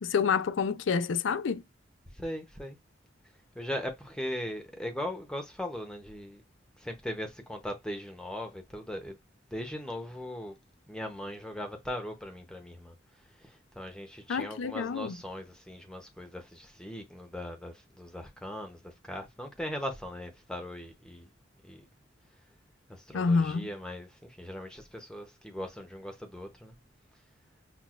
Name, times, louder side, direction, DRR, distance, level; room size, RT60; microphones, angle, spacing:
voice 1, 0.0-1.6 14.3-15.2 23.1-23.7, left 5 dB, 70° left, 0.4 m, -28 dB
voice 2, 2.1-2.8 3.5-6.4 6.8-9.2 9.5-10.6 10.9-12.9 13.4-21.3 21.6-21.9 22.9-26.7, left 1 dB, 5° left, 0.7 m, -39 dB
5.9 x 2.2 x 2.4 m
head